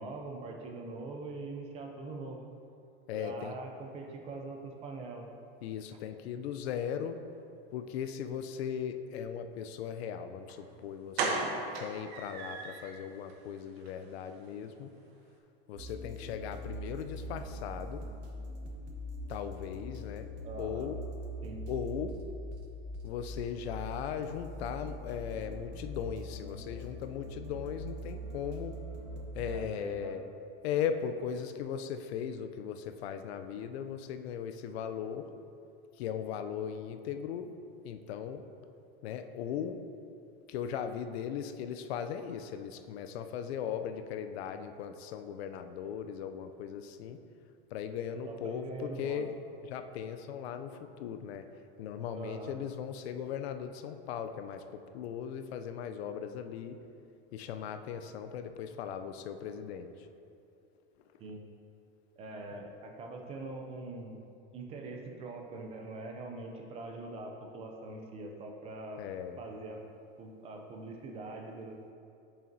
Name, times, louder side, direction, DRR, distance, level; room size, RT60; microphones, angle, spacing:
voice 1, 0.0-2.5 3.1-5.3 20.4-20.9 21.4-21.7 29.4-30.2 48.2-49.2 52.2-52.6 61.2-61.4 62.2-64.2 64.5-69.0 69.4-69.8 70.2-71.8, right 2 dB, 20° right, 2 dB, 0.4 m, -43 dB
voice 2, 3.1-3.6 5.6-7.2 7.7-11.4 11.7-14.9 15.7-18.0 19.3-20.3 20.6-21.0 21.7-22.2 23.0-28.8 29.3-30.2 30.6-35.3 36.0-37.6 37.8-38.4 39.0-39.8 40.5-47.2 47.7-49.4 49.7-51.5 51.8-56.8 57.3-60.1 69.0-69.4, left 8 dB, 85° left, 8 dB, 0.5 m, -38 dB
sound 1, 10.5-10.6 11.1-12.9 13.3-13.4 13.8-13.9 14.2-14.3, right 4 dB, 80° right, 1.0 m, -34 dB
sound 2, 15.7-29.6, equal, 60° right, 0.9 m, -42 dB
7.4 x 5.0 x 2.7 m, 2.6 s
supercardioid pair, 155°, 31 cm